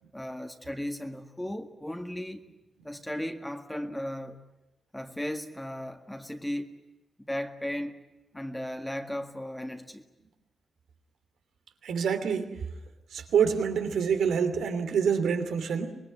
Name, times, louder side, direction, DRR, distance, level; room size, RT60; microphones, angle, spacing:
voice 1, 0.1-2.4 2.8-4.4 4.9-6.8 7.3-8.0 8.3-10.0, left 1 dB, 5° left, 1.8 m, -36 dB
voice 2, 11.8-12.6 13.1-15.9, right 7 dB, 85° right, 3.0 m, -26 dB
25.5 x 21.0 x 9.4 m
cardioid pair, 95°, 0 cm